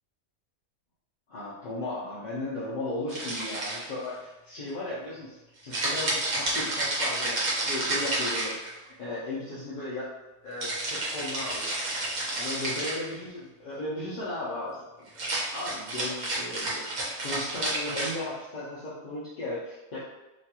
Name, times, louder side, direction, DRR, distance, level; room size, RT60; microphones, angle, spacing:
voice 1, 1.3-8.5 9.0-10.1 10.4-11.8 12.4-14.9 15.3-16.9 17.2-20.0, left 2 dB, 55° left, -9 dB, 0.5 m, -36 dB
sound 1, 3.1-4.1 5.7-8.9 10.6-13.1 15.1-18.1, right 2 dB, 80° right, 1.3 m, -30 dB
3.0 x 2.3 x 2.8 m, 1.0 s
omnidirectional pair, 1.5 m